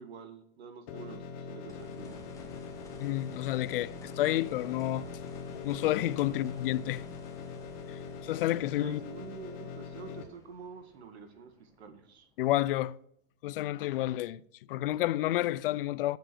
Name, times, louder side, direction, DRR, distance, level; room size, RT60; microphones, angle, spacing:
voice 1, 0.0-2.2 6.3-6.4 8.8-12.3, right 5 dB, 80° right, 2.1 m, -47 dB
sound 1, 0.9-10.2, left 6 dB, 35° left, 1.3 m, -42 dB
sound 2, 1.7-12.6 14.9-15.0, left 2 dB, 10° left, 1.4 m, -53 dB
voice 2, 3.0-5.1 5.6-7.0 7.9-9.0 12.4-13.0 13.4-14.4 14.7-16.2, left 14 dB, 60° left, 0.5 m, -30 dB
7.9 x 7.1 x 7.0 m
supercardioid pair, 160°, 32 cm